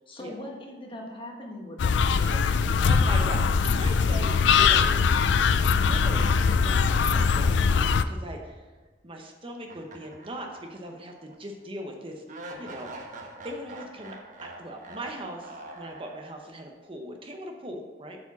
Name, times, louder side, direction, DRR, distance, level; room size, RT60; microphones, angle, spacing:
voice 1, 0.1-2.5, left 1 dB, 30° left, 0 dB, 1.3 m, -41 dB
sound 1, 1.8-8.0, left 5 dB, 75° left, 0.4 m, -22 dB
voice 2, 2.8-5.1 5.7-8.6 9.0-12.2 12.6-12.9 13.4-14.2 14.6-18.2, right 1 dB, 30° right, 3 dB, 0.8 m, -39 dB
sound 2, 9.7-11.0 11.3-11.4 12.3-16.6, right 2 dB, 45° right, 1.1 m, -44 dB
7.8 x 4.9 x 5.9 m, 1.3 s
head